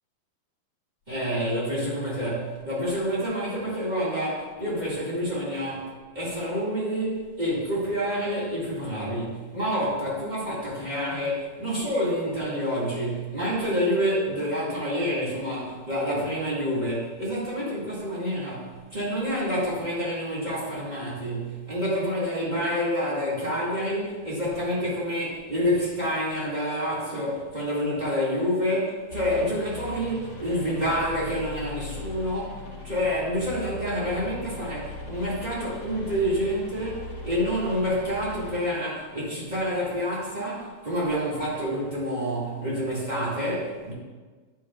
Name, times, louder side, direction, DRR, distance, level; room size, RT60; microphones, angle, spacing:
voice 1, 1.1-43.9, equal, 25° right, -8 dB, 1.0 m, -28 dB
sound 1, 29.1-38.5, left 2 dB, 60° left, 3.0 m, -39 dB
10.0 x 8.0 x 2.4 m, 1.4 s
omnidirectional pair, 4.4 m